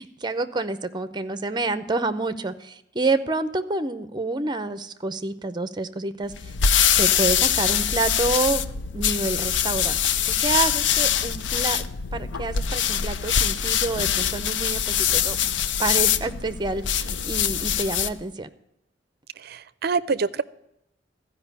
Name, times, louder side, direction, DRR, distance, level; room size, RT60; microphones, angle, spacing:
voice 1, 0.0-6.3 6.9-10.0 10.3-11.8 12.1-15.4 15.8-18.5, right 3 dB, 25° right, 0.7 m, -28 dB
sound 1, 6.3-18.2, left 8 dB, 80° left, 0.6 m, -23 dB
voice 2, 19.4-20.4, right 4 dB, 60° right, 0.5 m, -26 dB
14.0 x 5.4 x 8.1 m
head